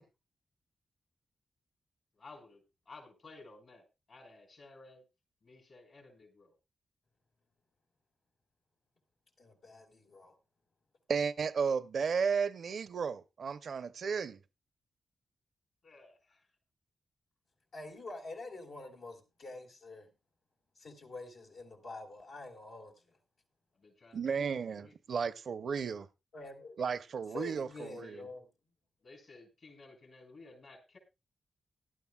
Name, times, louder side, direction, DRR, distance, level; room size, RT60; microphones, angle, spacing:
voice 1, 2.2-5.0 5.4-6.5 15.8-16.5 23.8-24.9 27.7-28.3 29.0-31.0, left 3 dB, 65° left, 6.0 m, -55 dB
voice 2, 9.4-10.3 17.7-20.1 20.8-23.2 26.3-26.8 27.3-28.5, left 2 dB, 90° left, 3.9 m, -47 dB
voice 3, 11.1-14.4 24.1-26.1 26.8-28.2, right 6 dB, 70° right, 0.6 m, -34 dB
18.5 x 12.0 x 2.3 m
supercardioid pair, 45°, 0 cm